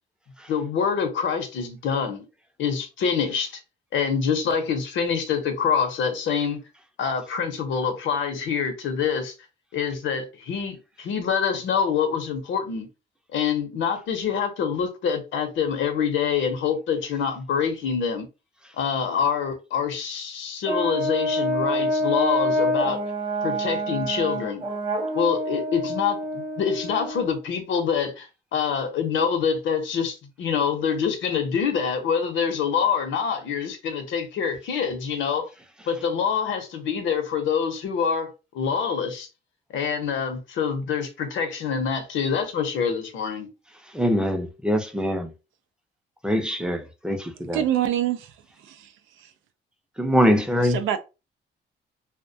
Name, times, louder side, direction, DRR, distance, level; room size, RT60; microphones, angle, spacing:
voice 1, 0.5-2.3 2.6-3.6 3.9-6.6 7.0-9.3 9.7-12.9 13.3-18.3 18.8-23.0 23.4-24.6 25.1-35.4 35.9-38.3 38.5-39.3 39.7-43.5, left 6 dB, 75° left, 0.7 m, -26 dB
Brass instrument, 20.7-27.4, equal, 25° right, 0.8 m, -27 dB
voice 2, 43.9-45.3 46.2-47.6 50.0-50.8, equal, 5° right, 0.5 m, -23 dB
voice 3, 47.5-49.3 50.6-51.0, right 11 dB, 85° right, 0.4 m, -27 dB
2.3 x 2.1 x 2.6 m
cardioid pair, 90°, 20 cm